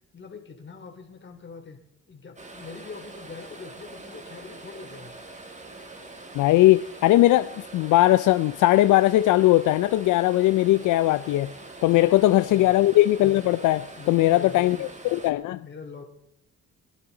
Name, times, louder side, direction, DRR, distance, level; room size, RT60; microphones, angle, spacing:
voice 1, 0.1-1.8 2.1-5.1 12.1-12.7 13.9-15.1 15.6-16.0, left 5 dB, 40° left, 3.0 m, -43 dB
sound 1, 2.4-15.3, right 2 dB, 25° right, 2.1 m, -44 dB
voice 2, 6.3-11.5 11.8-15.6, left 16 dB, 80° left, 0.5 m, -19 dB
22.5 x 11.0 x 3.9 m
cardioid pair, 90°, 30 cm